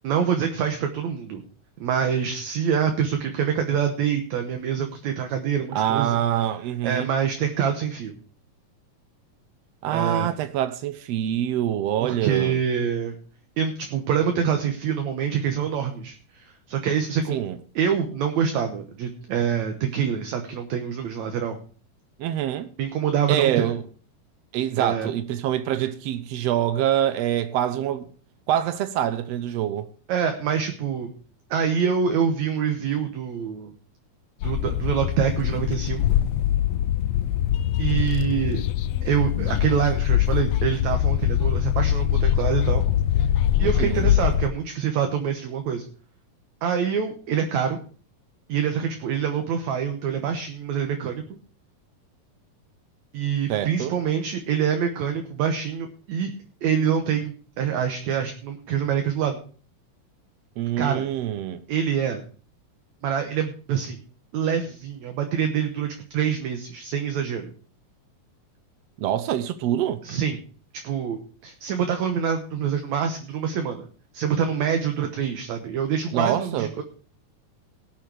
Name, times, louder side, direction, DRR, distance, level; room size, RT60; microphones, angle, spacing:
voice 1, 0.0-1.4 1.8-6.2 6.8-8.1 9.9-10.3 12.0-13.1 13.6-17.4 17.8-21.6 22.8-23.7 24.8-25.1 30.1-31.1 31.5-33.7 34.4-36.0 37.8-38.6 39.0-42.8 43.2-43.3 43.6-45.8 46.6-47.8 48.5-51.2 53.1-56.3 56.6-59.4 60.8-61.1 61.7-62.2 63.0-64.0 64.3-67.5 70.0-70.4 70.8-73.9 74.1-76.8, right 7 dB, 65° right, 2.3 m, -25 dB
voice 2, 5.7-7.1 9.8-12.6 17.3-17.6 22.2-22.7 23.3-23.8 24.5-28.1 28.5-29.9 43.6-44.1 53.5-53.9 60.6-61.6 69.0-70.0 76.1-76.8, right 11 dB, 85° right, 1.4 m, -25 dB
sound 1, 34.4-44.5, left 11 dB, 85° left, 1.4 m, -23 dB
18.5 x 6.5 x 4.9 m
omnidirectional pair, 3.8 m